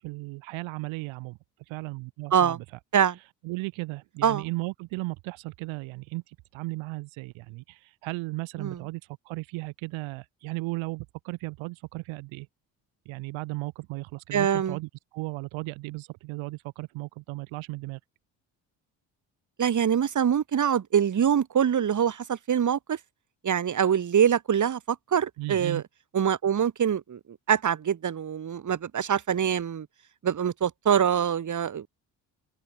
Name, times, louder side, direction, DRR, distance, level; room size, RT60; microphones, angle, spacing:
voice 1, 0.0-1.4 1.7-2.6 3.4-12.5 13.1-18.0 25.4-25.8, right 22 dB, 70° right, 1.0 m, -35 dB
voice 2, 14.3-14.8 19.6-23.0 23.4-25.8 26.1-29.9 30.2-31.9, right 8 dB, 35° right, 1.5 m, -24 dB
open air
hypercardioid pair, 50°, 49 cm